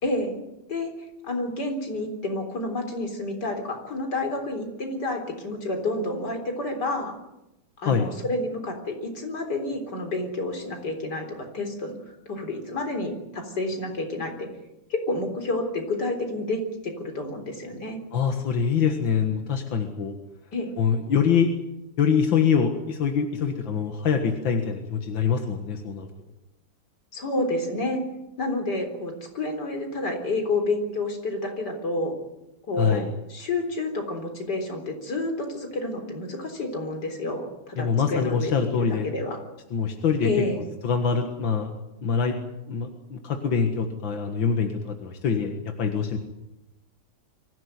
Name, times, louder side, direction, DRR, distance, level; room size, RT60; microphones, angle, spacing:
voice 1, 0.0-0.4 0.7-0.9 1.2-7.1 7.8-11.9 12.3-14.5 14.9-16.6 17.0-18.0 20.5-20.7 27.1-28.0 28.4-32.1 32.7-39.4 40.2-40.6, left 2 dB, 60° left, 4 dB, 4.4 m, -29 dB
voice 2, 18.1-20.1 20.8-21.5 22.0-26.1 32.8-33.1 37.8-39.1 39.7-40.3 40.8-41.7 42.0-42.4 42.7-46.2, left 6 dB, 90° left, 5 dB, 2.4 m, -24 dB
24.0 x 16.0 x 9.5 m, 0.93 s
omnidirectional pair, 2.0 m